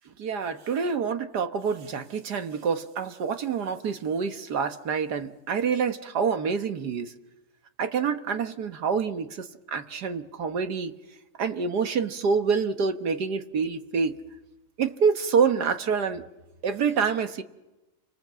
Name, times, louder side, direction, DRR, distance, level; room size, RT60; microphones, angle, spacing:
voice 1, 0.2-7.1 7.8-10.9 11.4-14.2 14.8-16.2 16.6-17.4, right 6 dB, 80° right, 1.9 m, -27 dB
30.0 x 25.0 x 7.6 m
omnidirectional pair, 1.7 m